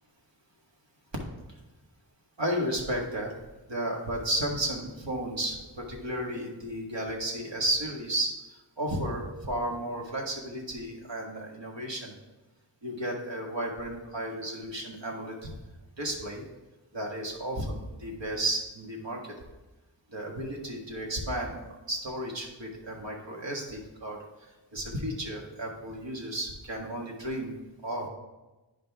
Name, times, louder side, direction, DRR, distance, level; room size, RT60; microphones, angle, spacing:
voice 1, 2.4-3.3 3.7-8.3 8.8-12.1 12.8-15.5 16.0-16.4 16.9-19.3 20.1-21.6 21.9-27.5 27.8-28.1, right 1 dB, 75° right, 0 dB, 1.7 m, -33 dB
9.7 x 5.3 x 3.5 m, 1.1 s
wide cardioid pair, 65°, 44 cm